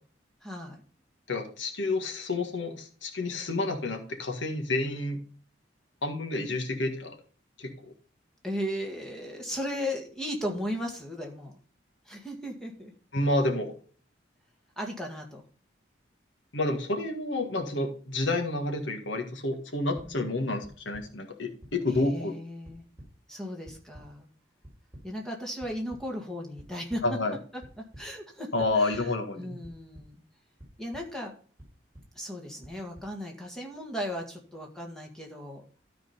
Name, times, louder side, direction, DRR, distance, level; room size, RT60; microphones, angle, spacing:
voice 1, 0.4-0.8 8.4-11.5 12.1-12.9 14.8-15.4 20.0-20.7 21.9-22.8 23.3-24.3 25.0-27.0 27.5-29.1 29.4-30.2 30.8-31.3 32.2-35.6, equal, 5° left, 0 dB, 1.8 m, -36 dB
voice 2, 1.3-5.2 6.0-7.2 7.6-7.9 13.1-13.7 16.5-22.3 27.0-27.4 28.5-29.6, left 2 dB, 85° left, 4 dB, 1.7 m, -29 dB
sound 1, 19.9-20.1 20.6-21.0 21.6-22.0 22.4-23.1 23.6-24.0 24.6-25.0 25.6-26.0 26.6-27.0 27.6-28.0 28.6-29.0 29.6-30.0 30.6-31.0 31.6-32.0 32.6-33.0, equal, 15° right, 3.8 m, -48 dB
13.0 x 4.4 x 5.4 m, 0.43 s
head